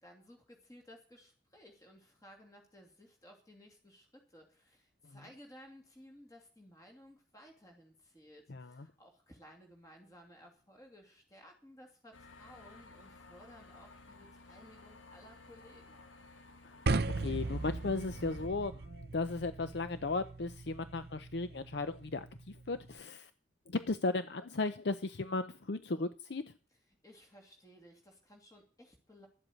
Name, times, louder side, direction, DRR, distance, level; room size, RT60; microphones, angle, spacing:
voice 1, 0.0-16.0 27.0-29.3, equal, 20° left, 2.7 m, -58 dB
voice 2, 8.5-8.9 16.6-16.8 17.2-23.3 23.7-26.5, left 3 dB, 65° left, 0.6 m, -36 dB
sound 1, 12.1-18.5, left 3 dB, 90° left, 1.5 m, -56 dB
sound 2, 16.9-23.0, right 3 dB, 55° right, 0.7 m, -38 dB
12.5 x 8.0 x 8.7 m
head